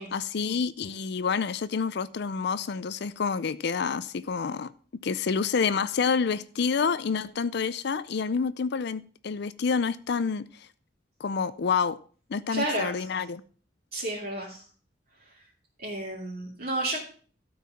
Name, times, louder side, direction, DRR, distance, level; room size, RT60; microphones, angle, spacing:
voice 1, 0.0-4.7 5.0-10.7 11.2-12.0 12.3-13.4, left 5 dB, 65° left, 0.5 m, -28 dB
voice 2, 12.5-12.9 13.9-14.6 15.8-17.0, right 1 dB, 50° right, 2.8 m, -31 dB
13.0 x 4.8 x 7.0 m
head